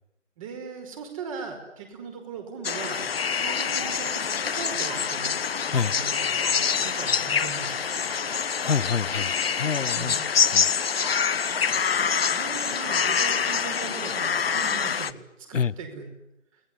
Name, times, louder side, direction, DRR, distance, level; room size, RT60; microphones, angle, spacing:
voice 1, 0.4-3.0 3.4-5.3 5.7-7.9 9.9-10.2 12.3-16.1, right 5 dB, 25° right, 6 dB, 5.2 m, -39 dB
sound 1, 2.6-15.1, left 6 dB, 50° left, 1.1 m, -26 dB
sound 2, 3.2-4.0 4.8-5.4 5.7-6.0 6.4-6.7 7.7-8.9 10.9-11.8 13.2-14.0, equal, 10° right, 2.5 m, -43 dB
voice 2, 8.6-10.2 10.5-10.7 15.5-15.7, left 6 dB, 80° left, 17 dB, 1.0 m, -27 dB
30.0 x 20.0 x 9.9 m, 0.88 s
figure-of-eight pair, 155°, 37 cm